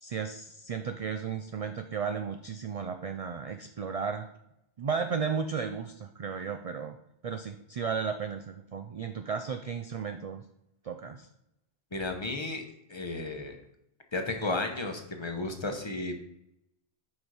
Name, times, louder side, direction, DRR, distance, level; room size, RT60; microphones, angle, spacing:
voice 1, 0.0-4.3 4.8-7.0 7.2-10.4 10.8-11.3, right 6 dB, 55° right, 7 dB, 0.4 m, -34 dB
voice 2, 11.9-12.6 12.9-13.6 14.1-16.1, left 2 dB, 25° left, 4 dB, 0.9 m, -33 dB
6.4 x 5.3 x 4.8 m, 0.81 s
omnidirectional pair, 1.1 m